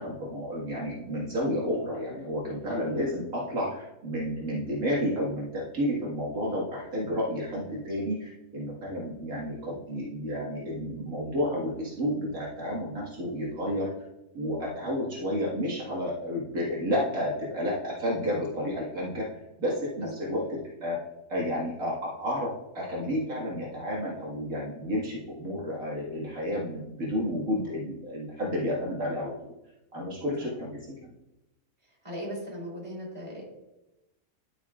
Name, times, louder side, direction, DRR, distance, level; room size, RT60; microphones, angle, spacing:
voice 1, 0.0-13.9 14.3-19.3 19.6-21.0 21.3-29.5 29.9-31.1, equal, 70° right, -5 dB, 2.3 m, -31 dB
voice 2, 32.0-33.6, equal, 20° right, -3 dB, 3.5 m, -38 dB
11.0 x 8.9 x 2.4 m, 0.95 s
omnidirectional pair, 1.5 m